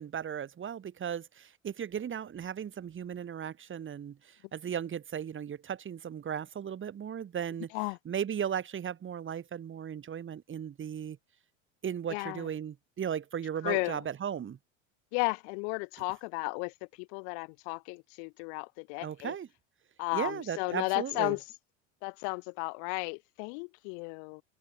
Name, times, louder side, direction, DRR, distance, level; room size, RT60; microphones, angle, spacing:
voice 1, 0.0-7.7 8.0-11.2 11.8-14.6 19.0-19.5 20.1-21.3, right 8 dB, 30° right, 3.0 m, -36 dB
voice 2, 12.1-12.5 13.6-14.0 15.1-19.3 20.0-21.4 22.0-24.4, left 40 dB or more, 60° left, 1.2 m, -34 dB
open air
hypercardioid pair, 85°, 39 cm